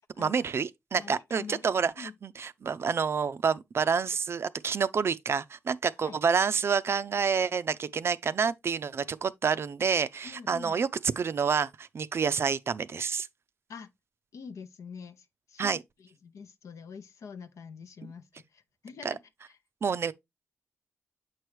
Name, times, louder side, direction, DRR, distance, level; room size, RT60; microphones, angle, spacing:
voice 1, 0.2-10.9 11.2-13.3 15.6-15.8 19.0-19.1 19.8-20.1, right 6 dB, 50° right, 0.4 m, -28 dB
voice 2, 1.0-2.1 6.0-6.2 10.2-10.8 13.7-13.9 14.3-19.2 19.5-19.6, left 5 dB, 70° left, 0.7 m, -46 dB
7.4 x 4.6 x 3.1 m
cardioid pair, 65°, 5 cm